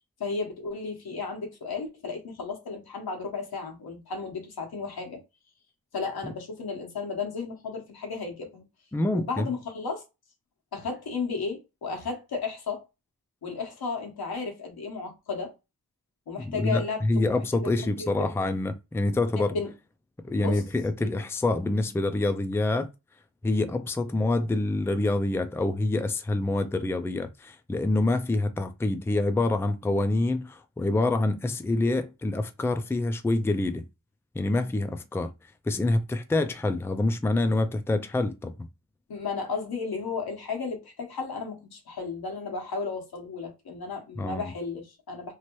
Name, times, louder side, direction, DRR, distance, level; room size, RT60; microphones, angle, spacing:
voice 1, 0.2-5.2 5.9-8.6 9.1-10.0 10.7-12.8 13.4-15.5 16.3-18.3 19.5-19.7 20.3-20.6 21.0-21.1 39.1-45.3, left 4 dB, 85° left, 1.2 m, -34 dB
voice 2, 8.9-9.5 16.4-19.6 20.2-22.9 23.4-33.9 34.3-35.3 35.6-38.7 44.2-44.5, left 2 dB, 5° left, 0.4 m, -26 dB
3.0 x 2.5 x 3.1 m
cardioid pair, 60°, 36 cm